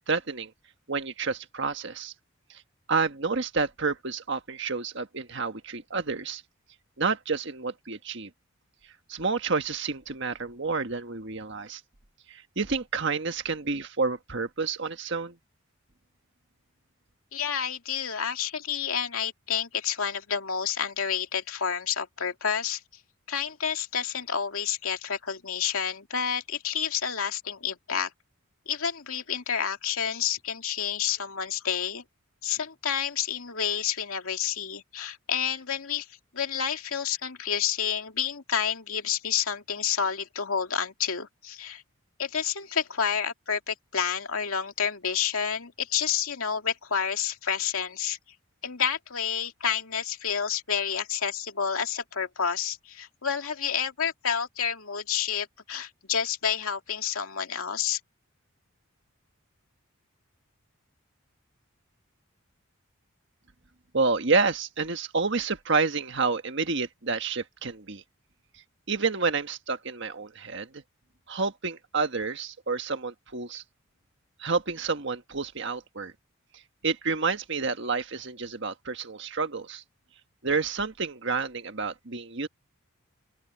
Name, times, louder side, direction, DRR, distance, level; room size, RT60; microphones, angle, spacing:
voice 1, 0.1-0.5 0.9-2.1 2.9-6.4 7.0-8.3 9.1-11.8 12.3-15.4 63.9-68.0 68.9-70.8 71.3-73.6 74.4-76.1 76.8-79.8 80.4-82.5, right 4 dB, 60° right, 1.6 m, -29 dB
voice 2, 17.3-22.8 23.3-28.1 28.7-32.0 32.4-36.1 36.3-41.8 42.2-48.2 48.6-58.0, left 7 dB, 85° left, 2.4 m, -29 dB
open air
head